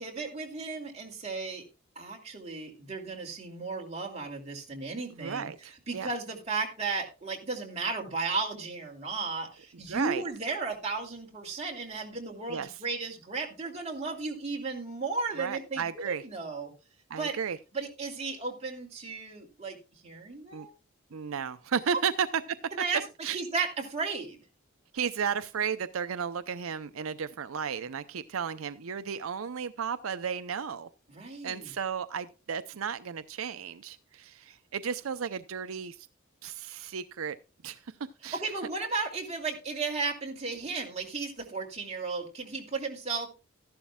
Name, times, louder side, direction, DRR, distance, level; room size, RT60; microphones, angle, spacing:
voice 1, 0.0-1.6 2.0-16.7 17.2-17.3 17.7-19.8 20.0-20.7 22.7-23.0 23.3-24.4 31.1-31.7 38.3-43.3, right 4 dB, 30° right, 2.5 m, -34 dB
voice 2, 5.2-6.1 9.9-10.2 12.5-12.8 15.4-16.2 17.1-17.6 20.5-20.7 21.1-22.3 23.2-23.4 24.9-30.9 31.4-36.1 36.4-37.4 37.6-37.8 38.2-38.4, right 7 dB, 90° right, 0.5 m, -34 dB
14.0 x 11.5 x 2.2 m
head